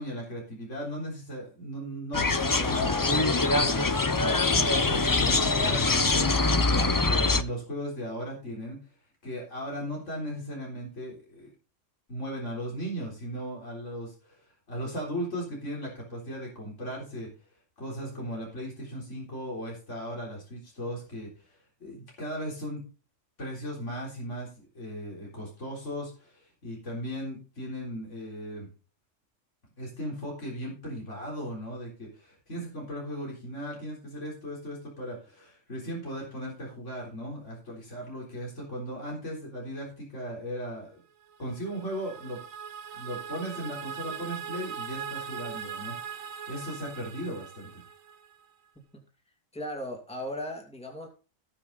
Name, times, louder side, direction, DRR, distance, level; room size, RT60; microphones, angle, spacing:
voice 1, 0.0-2.9 3.5-6.4 6.7-8.8 9.2-11.5 12.1-17.3 17.8-22.8 23.4-28.7 29.8-41.0 41.4-42.4 42.9-46.2 46.5-47.8, equal, 65° left, -3 dB, 4.2 m, -37 dB
sound 1, 2.1-7.4, left 3 dB, 25° left, 0.4 m, -24 dB
voice 2, 2.5-3.6 49.5-51.1, left 1 dB, 5° left, 1 dB, 2.6 m, -37 dB
sound 2, 41.3-48.4, right 7 dB, 90° right, 1.2 m, -40 dB
18.0 x 6.0 x 4.0 m, 0.35 s
omnidirectional pair, 1.4 m